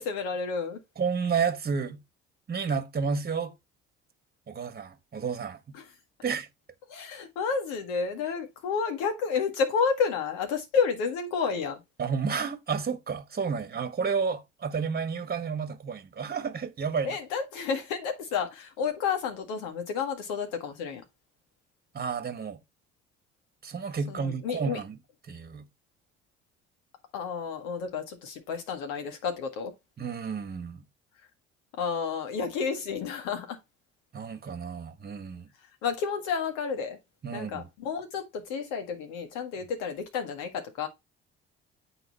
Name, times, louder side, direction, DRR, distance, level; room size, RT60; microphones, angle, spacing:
voice 1, 0.0-0.8 5.7-5.9 6.9-11.8 17.0-21.0 24.1-24.8 27.1-29.7 31.7-33.6 35.8-37.0 37.3-40.9, left 6 dB, 70° left, 1.8 m, -31 dB
voice 2, 1.0-2.0 2.5-3.5 4.5-5.6 6.2-6.5 12.0-17.2 21.9-22.6 23.6-25.0 25.3-25.7 30.0-30.8 34.1-35.5 37.2-37.7, right 6 dB, 30° right, 1.3 m, -31 dB
8.7 x 3.9 x 4.2 m
hypercardioid pair, 55°, 33 cm